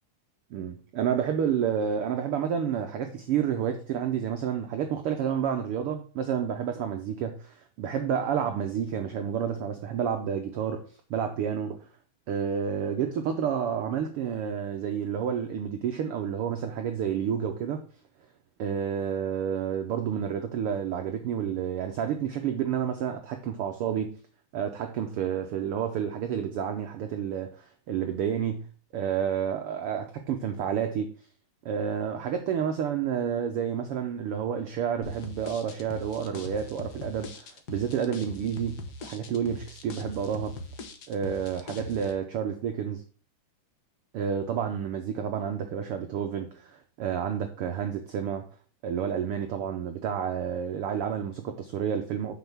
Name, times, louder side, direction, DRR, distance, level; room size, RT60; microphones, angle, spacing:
voice 1, 0.5-10.8 11.1-11.8 12.3-17.8 18.6-24.1 24.5-28.6 28.9-31.1 31.6-40.5 41.1-43.0 44.1-48.5 48.8-52.3, right 8 dB, 85° right, 1.2 m, -30 dB
sound 1, 35.0-42.1, left 2 dB, 75° left, 0.9 m, -41 dB
6.1 x 6.0 x 7.0 m
omnidirectional pair, 3.6 m